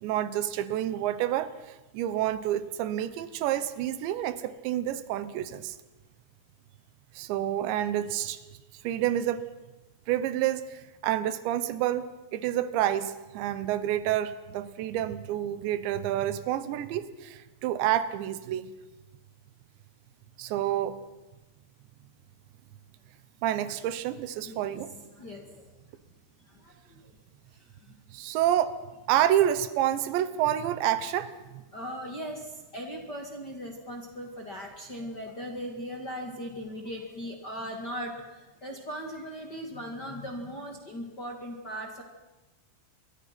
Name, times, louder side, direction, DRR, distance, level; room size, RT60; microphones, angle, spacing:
voice 1, 0.0-5.8 7.1-8.4 8.8-9.4 10.1-12.0 12.3-18.7 20.4-21.0 23.4-24.9 28.1-28.8 29.1-31.6, right 12 dB, 85° right, 14 dB, 3.3 m, -28 dB
voice 2, 25.1-25.7 26.4-27.2 27.5-27.9 31.7-42.0, equal, 35° left, 2 dB, 1.7 m, -39 dB
27.5 x 23.0 x 6.0 m, 1.1 s
omnidirectional pair, 5.1 m